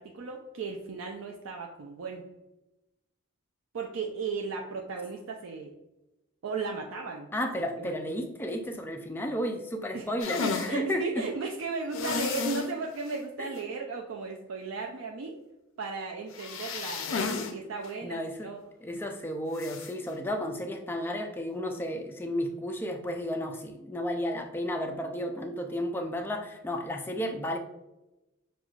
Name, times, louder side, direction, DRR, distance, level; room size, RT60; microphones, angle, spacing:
voice 1, 0.0-2.2 3.7-5.7 6.4-7.3 7.6-7.9 9.9-10.1 10.4-15.4 15.8-18.6, right 4 dB, 75° right, 1 dB, 0.4 m, -35 dB
voice 2, 7.3-11.2 13.4-13.5 18.0-18.5 18.8-27.6, equal, 10° left, 3 dB, 0.3 m, -33 dB
sound 1, 10.2-10.7 11.9-12.7 13.1-13.2 13.6-13.7 16.3-17.5 17.8-17.9 19.6-19.9, left 5 dB, 75° left, 0.5 m, -32 dB
6.0 x 2.3 x 2.4 m, 0.97 s
head